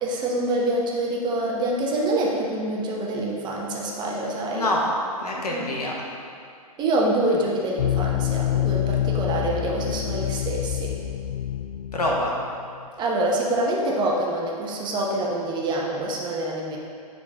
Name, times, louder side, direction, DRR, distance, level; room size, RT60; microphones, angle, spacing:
voice 1, 0.0-4.7 5.5-5.9 6.8-11.0 13.0-16.8, right 1 dB, 25° right, -2 dB, 1.0 m, -26 dB
voice 2, 4.5-4.9 5.2-5.9 11.9-12.3, left 1 dB, 85° left, -2 dB, 1.3 m, -25 dB
sound 1, 7.8-12.8, left 13 dB, 65° left, 0.4 m, -27 dB
9.6 x 4.0 x 3.6 m, 2.3 s
hypercardioid pair, 120°, 19 cm